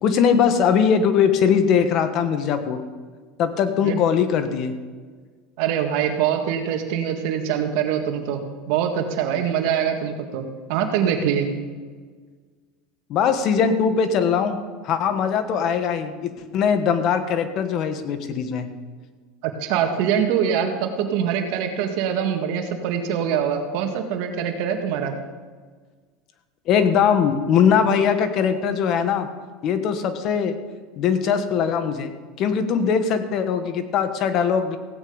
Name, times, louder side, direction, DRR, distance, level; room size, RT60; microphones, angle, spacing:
voice 1, 0.0-2.8 3.4-4.7 13.1-18.7 26.7-29.3 29.6-30.6 31.0-32.1 32.4-34.8, left 7 dB, 50° left, 9 dB, 1.4 m, -21 dB
voice 2, 5.6-8.4 8.7-11.5 19.4-25.1, right 8 dB, 70° right, 5 dB, 1.9 m, -24 dB
16.0 x 9.1 x 5.2 m, 1.5 s
supercardioid pair, 120°, 0 cm